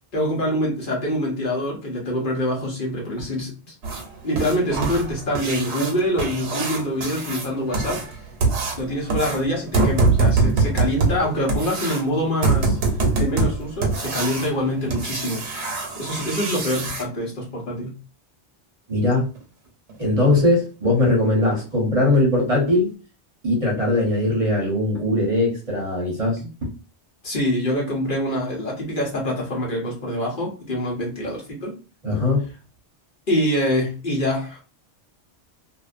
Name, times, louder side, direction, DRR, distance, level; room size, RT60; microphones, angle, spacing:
voice 1, 0.1-3.7 4.2-8.2 8.8-12.8 13.1-15.4 16.0-17.9 27.2-31.7 33.3-34.6, equal, 50° left, -2 dB, 1.0 m, -25 dB
sound 1, 3.8-17.0 19.3-19.4 19.9-20.0 20.4-20.5 21.0-21.1 21.6-21.7 22.1-22.2 22.7-22.8, right 3 dB, 75° right, 1.0 m, -24 dB
voice 2, 18.9-19.3 20.0-22.9 23.4-26.7 32.0-32.4, left 2 dB, 35° right, -2 dB, 0.9 m, -20 dB
2.5 x 2.2 x 2.4 m, 0.34 s
omnidirectional pair, 1.2 m